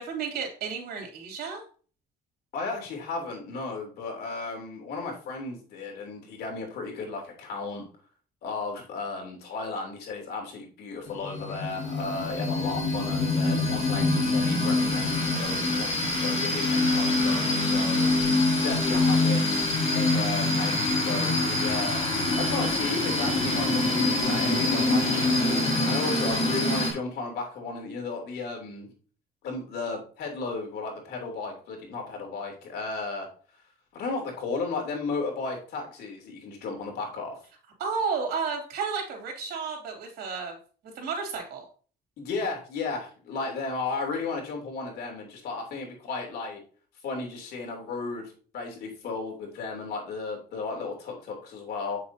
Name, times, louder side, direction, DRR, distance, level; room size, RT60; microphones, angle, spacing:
voice 1, 0.0-1.6 25.0-25.3 37.8-40.6 40.9-41.6, right 5 dB, 65° right, 2 dB, 3.0 m, -32 dB
voice 2, 2.5-7.8 8.4-19.6 19.9-22.0 22.3-28.9 29.4-33.3 33.9-37.4 42.2-46.6 47.0-52.0, left 3 dB, 70° left, 1 dB, 3.2 m, -34 dB
sound 1, 11.1-26.9, left 2 dB, 35° left, 4.1 m, -25 dB
8.1 x 6.7 x 2.8 m, 0.40 s
cardioid pair, 110°, 17 cm